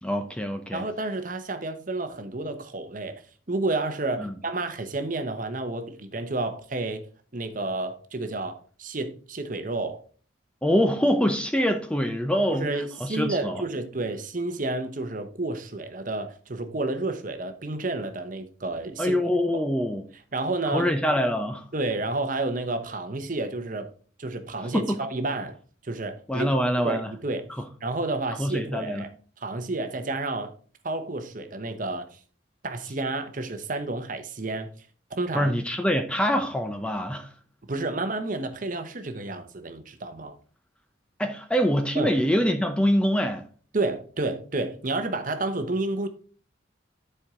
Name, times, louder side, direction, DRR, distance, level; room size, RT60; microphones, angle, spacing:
voice 1, 0.0-0.8 4.2-4.3 10.6-12.7 13.0-13.6 19.0-20.0 20.7-21.6 24.6-25.0 26.3-27.1 27.6-27.7 28.4-29.1 35.3-37.3 41.2-43.4, equal, 5° left, 0.6 m, -24 dB
voice 2, 0.7-3.2 3.5-7.1 7.3-10.0 12.5-19.2 20.3-20.9 21.7-23.9 24.2-25.6 25.8-26.5 26.8-27.4 27.8-29.1 29.4-30.5 30.8-32.2 32.6-34.7 35.2-35.5 37.7-40.4 42.0-42.1 43.7-46.1, right 2 dB, 40° right, 0.9 m, -30 dB
10.5 x 4.6 x 3.7 m
head